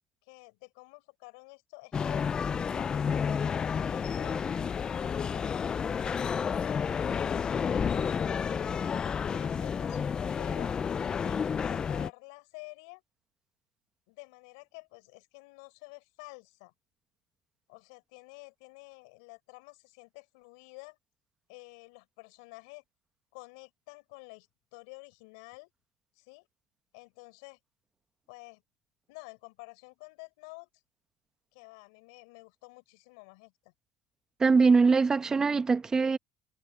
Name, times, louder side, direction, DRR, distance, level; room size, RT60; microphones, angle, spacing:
voice 1, 0.2-2.2 2.8-4.4 4.9-5.6 6.0-8.1 8.6-10.8 11.2-13.0 14.1-16.7 17.7-21.0 21.5-22.8 23.3-25.7 26.1-26.5 26.9-27.6 28.3-28.6 29.1-30.7 31.5-33.7, left 31 dB, 85° left, 6.2 m, -50 dB
sound 1, 1.9-12.1, left 6 dB, 30° left, 0.6 m, -30 dB
voice 2, 34.4-36.2, right 4 dB, 25° right, 1.4 m, -22 dB
supercardioid pair, 105°, 3 cm